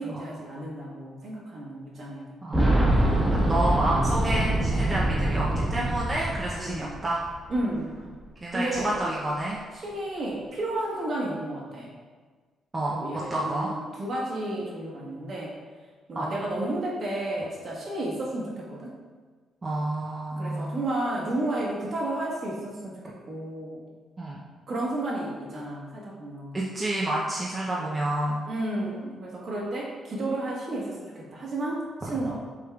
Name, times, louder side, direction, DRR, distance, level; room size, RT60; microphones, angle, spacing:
voice 1, 0.0-2.4 4.9-5.2 6.6-7.0 7.5-8.0 8.5-8.9 9.7-11.9 12.9-15.6 16.1-19.0 20.4-23.8 24.7-26.6 28.4-32.4, right 1 dB, 50° right, -4 dB, 1.4 m, -32 dB
voice 2, 2.4-7.2 8.4-9.6 12.7-13.0 13.3-13.7 16.2-16.3 19.6-20.8 24.2-24.4 26.5-28.4, right 1 dB, 25° right, -5 dB, 0.6 m, -29 dB
Boom, 2.5-7.3 7.5-7.6 8.7-8.8, right 1 dB, 10° right, 1.1 m, -24 dB
6.3 x 3.6 x 2.3 m, 1.5 s
cardioid pair, 90°, 0 cm